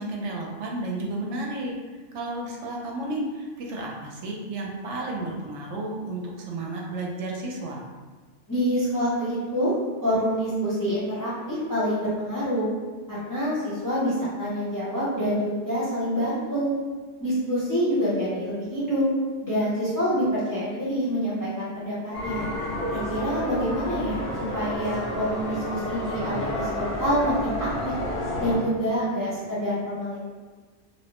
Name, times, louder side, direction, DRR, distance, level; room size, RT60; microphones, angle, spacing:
voice 1, 0.0-1.7 2.1-7.8, right 2 dB, 80° right, -1 dB, 0.9 m, -32 dB
voice 2, 8.5-9.7 10.0-12.7 13.1-16.7 17.2-19.0 19.4-22.5 22.9-24.2 24.5-28.0 28.4-30.2, equal, 20° left, -10 dB, 0.7 m, -26 dB
sound 1, 22.1-28.6, equal, 55° left, 0.9 m, -30 dB
2.8 x 2.1 x 2.9 m, 1.4 s
omnidirectional pair, 1.2 m